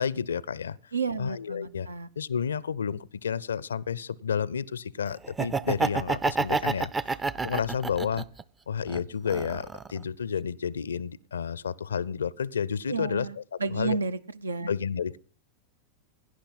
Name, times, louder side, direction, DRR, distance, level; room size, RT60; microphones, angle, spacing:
voice 1, 0.0-0.9 1.2-1.9 2.2-7.2 7.4-8.3 8.7-13.3 13.7-14.0 14.7-15.2, left 7 dB, 70° left, 0.5 m, -31 dB
voice 2, 0.9-2.1 12.9-14.7, right 4 dB, 75° right, 0.6 m, -32 dB
Laughter, 5.2-8.4 8.9-10.0, right 4 dB, 15° right, 0.5 m, -28 dB
17.0 x 10.5 x 4.0 m
figure-of-eight pair, 90°, 0 cm